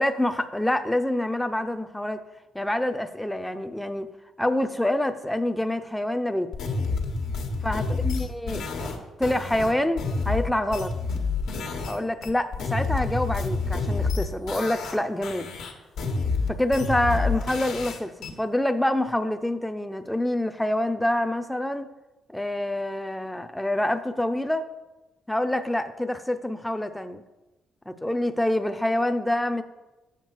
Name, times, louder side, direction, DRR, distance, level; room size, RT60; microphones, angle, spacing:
voice 1, 0.0-2.2 2.5-4.1 4.4-6.5 7.6-8.9 9.2-11.0 11.9-15.5 16.5-21.9 22.3-24.7 25.3-27.2 27.9-29.6, left 1 dB, 5° left, 8 dB, 0.5 m, -26 dB
sound 1, 6.5-12.0 12.2-15.0 15.2-18.3, left 4 dB, 85° left, 1.3 m, -28 dB
7.4 x 6.8 x 4.5 m, 1.1 s
cardioid pair, 90°, 0 cm